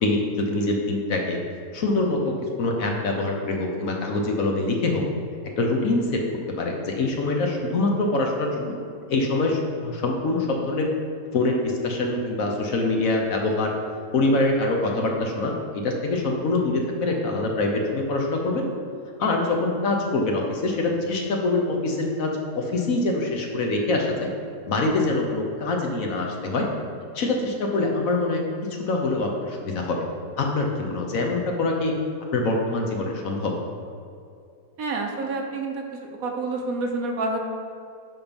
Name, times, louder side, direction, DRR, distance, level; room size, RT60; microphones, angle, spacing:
voice 1, 0.0-1.4 1.7-5.0 5.6-6.2 6.6-8.7 9.1-10.9 11.3-13.7 14.1-15.5 15.8-18.7 19.2-24.3 24.7-26.7 27.1-28.4 28.9-30.1 30.4-31.9 32.3-33.5, left 2 dB, 60° left, 1 dB, 1.3 m, -24 dB
voice 2, 34.8-37.4, right 3 dB, 65° right, 2 dB, 1.3 m, -28 dB
10.5 x 3.8 x 5.2 m, 2.3 s
omnidirectional pair, 1.7 m